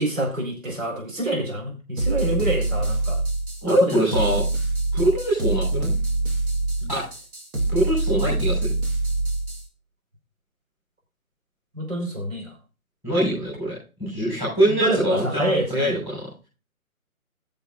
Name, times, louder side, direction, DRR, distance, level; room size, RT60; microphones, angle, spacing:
voice 1, 0.0-3.2 3.7-4.0 6.8-6.9 11.7-12.5 14.7-15.9, right 1 dB, 65° right, 0 dB, 4.7 m, -27 dB
sound 1, 2.0-9.7, right 2 dB, 80° right, 2.6 m, -25 dB
voice 2, 3.6-4.4 4.9-5.9 6.9-7.0 7.7-8.7 13.0-16.3, right 1 dB, 5° right, -9 dB, 5.1 m, -23 dB
17.5 x 7.1 x 2.5 m, 0.33 s
hypercardioid pair, 170°, 43 cm